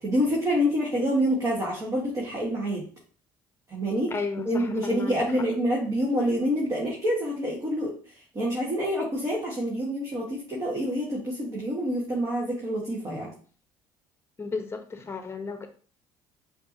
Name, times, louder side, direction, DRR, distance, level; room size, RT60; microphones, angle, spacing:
voice 1, 0.0-2.8 3.7-4.1 4.4-7.9 8.3-13.3, equal, 35° right, -4 dB, 1.5 m, -27 dB
voice 2, 4.1-5.2 14.4-15.7, left 4 dB, 25° left, 6 dB, 0.9 m, -33 dB
5.2 x 2.8 x 2.8 m, 0.42 s
hypercardioid pair, 70°, 10 cm